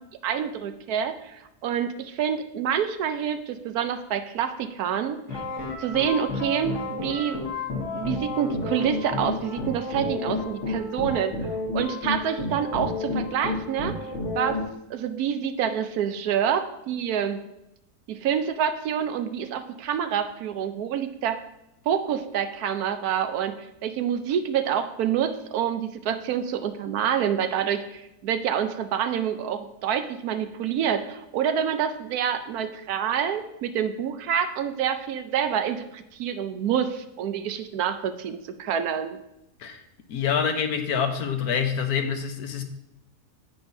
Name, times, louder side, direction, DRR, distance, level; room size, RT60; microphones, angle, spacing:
voice 1, 0.2-5.4 5.8-7.4 7.9-11.3 11.7-14.0 14.3-14.6 14.9-17.4 18.1-21.4 21.9-23.6 23.8-39.2, right 8 dB, 80° right, 9 dB, 1.2 m, -27 dB
sound 1, 5.3-14.6, left 3 dB, 50° left, 1.7 m, -31 dB
voice 2, 40.1-42.6, left 7 dB, 75° left, 7 dB, 1.3 m, -26 dB
9.5 x 8.8 x 2.7 m, 0.85 s
omnidirectional pair, 1.6 m